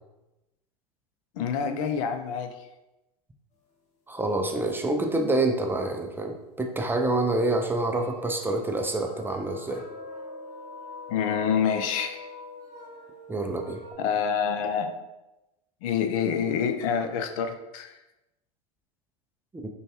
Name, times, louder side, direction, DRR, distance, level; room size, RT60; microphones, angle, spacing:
voice 1, 1.4-2.5 11.1-12.3 14.0-14.9 15.8-17.9, left 7 dB, 60° left, 7 dB, 0.5 m, -27 dB
voice 2, 4.1-9.8 13.3-13.8, right 2 dB, 10° right, 3 dB, 0.4 m, -27 dB
sound 1, 6.0-6.1 6.8-6.9 7.6-13.9, left 3 dB, 35° left, 1.0 m, -44 dB
5.1 x 2.3 x 2.9 m, 0.97 s
hypercardioid pair, 85°, 20 cm